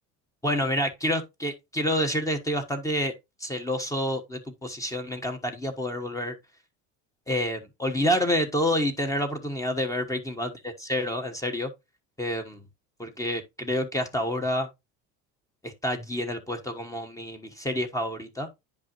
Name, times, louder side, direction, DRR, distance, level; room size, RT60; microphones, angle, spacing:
voice 1, 0.4-3.1 3.4-6.3 7.3-11.7 12.2-12.6 13.0-14.7 15.6-18.5, left 1 dB, 10° left, 1.2 m, -28 dB
9.9 x 5.4 x 3.0 m
cardioid pair, 135°, 33 cm